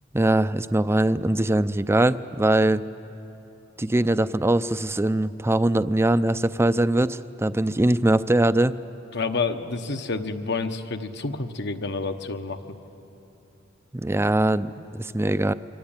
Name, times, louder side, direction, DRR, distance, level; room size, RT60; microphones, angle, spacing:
voice 1, 0.1-2.8 3.8-8.8 13.9-15.5, right 1 dB, 15° right, 13 dB, 0.5 m, -22 dB
voice 2, 9.1-12.6, left 4 dB, 60° left, 8 dB, 1.2 m, -29 dB
26.0 x 24.0 x 8.9 m, 2.9 s
head